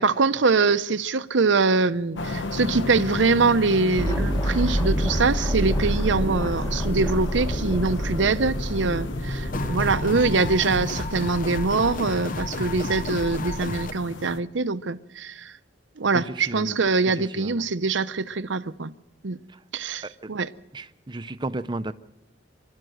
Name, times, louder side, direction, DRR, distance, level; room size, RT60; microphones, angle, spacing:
voice 1, 0.0-15.5 16.0-18.9 19.2-19.4 19.7-20.5, right 4 dB, 75° right, 0.8 m, -23 dB
sound 1, 2.2-14.4, left 2 dB, 80° left, 1.0 m, -34 dB
sound 2, 4.0-10.8, equal, 20° left, 1.6 m, -27 dB
sound 3, 9.5-13.9, left 2 dB, 45° left, 0.8 m, -31 dB
voice 2, 16.4-16.8 17.3-17.6 20.0-20.1 20.7-21.9, right 2 dB, 25° right, 0.6 m, -32 dB
26.0 x 12.5 x 7.8 m
head